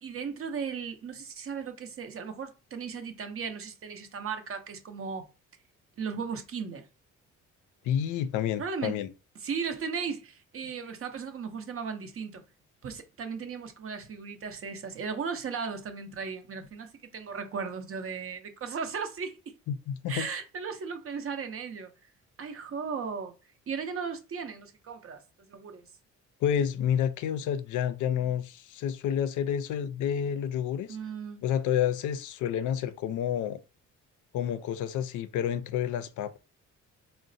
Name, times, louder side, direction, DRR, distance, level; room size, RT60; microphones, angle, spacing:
voice 1, 0.0-5.3 6.0-6.9 8.6-9.0 9.4-12.4 12.8-19.4 20.1-21.9 22.4-23.3 23.7-25.9 30.9-31.4, right 6 dB, 45° right, 0.7 m, -36 dB
voice 2, 7.8-9.1 19.7-20.3 26.4-30.9 31.4-33.6 34.3-36.4, left 9 dB, 80° left, 0.5 m, -29 dB
3.9 x 2.0 x 2.6 m
cardioid pair, 90°, 30 cm